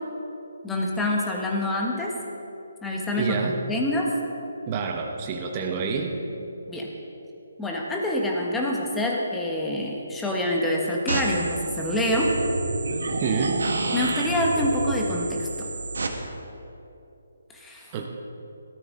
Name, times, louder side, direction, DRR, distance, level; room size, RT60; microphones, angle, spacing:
voice 1, 0.6-2.1 2.8-4.1 6.7-6.9 7.6-12.3 13.9-15.7 17.5-17.9, left 1 dB, 5° left, -2 dB, 1.2 m, -26 dB
voice 2, 3.2-3.5 4.7-6.1 13.2-13.6 17.9-18.1, right 5 dB, 20° right, 2 dB, 0.8 m, -27 dB
sound 1, 11.1-16.1, right 3 dB, 85° right, 1.6 m, -28 dB
17.0 x 13.5 x 3.7 m, 2.8 s
hypercardioid pair, 170°, 0 cm